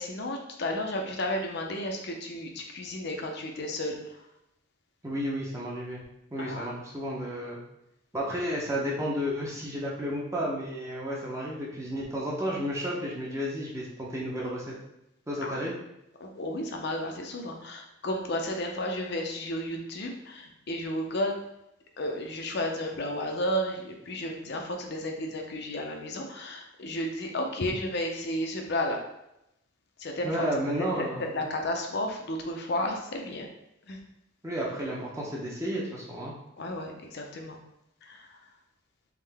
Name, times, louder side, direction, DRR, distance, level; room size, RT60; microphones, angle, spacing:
voice 1, 0.0-4.2 6.4-6.7 15.4-15.6 16.2-21.4 22.0-29.0 30.0-30.5 30.8-33.5 33.9-34.0 36.6-37.6 38.0-38.3, left 1 dB, 55° left, 2 dB, 0.6 m, -33 dB
voice 2, 5.0-6.0 6.3-7.6 8.1-14.8 15.3-15.7 30.2-31.5 34.4-36.3, equal, 15° right, -5 dB, 0.7 m, -32 dB
3.7 x 3.2 x 3.4 m, 0.85 s
head